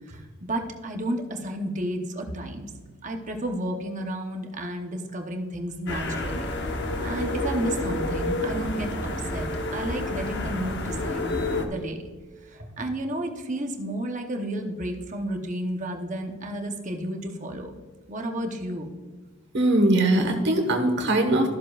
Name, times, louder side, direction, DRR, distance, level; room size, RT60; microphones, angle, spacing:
voice 1, 0.1-2.7 3.0-6.5 7.0-11.3 11.7-12.0 12.4-17.8 18.1-18.9, right 1 dB, 35° right, 3 dB, 0.9 m, -32 dB
sound 1, 5.9-11.7, left 2 dB, 50° left, 1.0 m, -29 dB
voice 2, 19.5-21.5, right 1 dB, 50° right, 4 dB, 1.4 m, -21 dB
13.5 x 7.3 x 2.4 m, 1.5 s
head